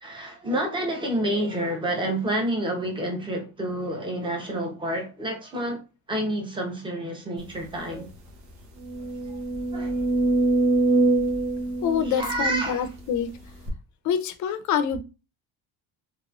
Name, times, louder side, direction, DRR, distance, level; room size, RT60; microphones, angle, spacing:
voice 1, 0.0-8.1 9.3-9.4 9.7-9.9 12.0-12.9, right 1 dB, 15° right, 0.8 m, -29 dB
sound 1, 7.6-7.7 8.1-8.2 8.8-13.0 13.7-13.8, right 2 dB, 80° right, 1.1 m, -24 dB
voice 2, 11.8-13.3 14.0-15.0, left 7 dB, 50° left, 0.6 m, -26 dB
3.2 x 3.0 x 2.4 m
cardioid pair, 140°, 38 cm